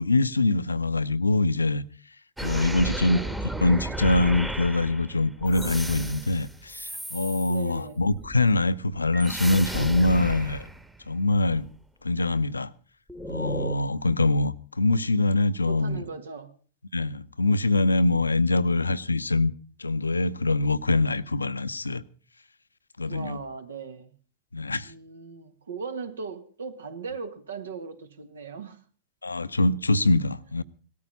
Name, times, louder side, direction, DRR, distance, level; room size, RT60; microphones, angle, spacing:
voice 1, 0.0-1.8 2.4-3.2 3.6-10.6 11.1-11.7 12.0-12.7 13.3-16.0 16.9-19.5 19.8-22.0 23.0-23.4 24.5-24.9 29.2-30.6, left 2 dB, 80° left, 0.7 m, -24 dB
sound 1, 2.4-7.7 8.0-11.7 13.1-13.7, right 1 dB, 5° right, 1.3 m, -34 dB
voice 2, 2.5-3.4 7.4-8.0 15.7-16.5 18.5-18.7 23.0-24.1 24.8-28.8, right 5 dB, 70° right, 1.9 m, -39 dB
18.5 x 13.0 x 5.4 m
figure-of-eight pair, 90°, 0 cm